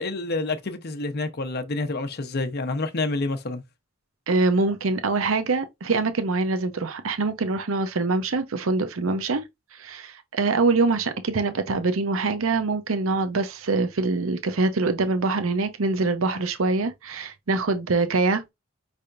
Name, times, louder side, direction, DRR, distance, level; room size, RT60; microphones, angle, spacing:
voice 1, 0.0-3.6, left 2 dB, 50° left, 0.8 m, -28 dB
voice 2, 4.3-9.4 9.8-18.5, right 3 dB, 75° right, 0.7 m, -24 dB
5.6 x 3.4 x 2.6 m
head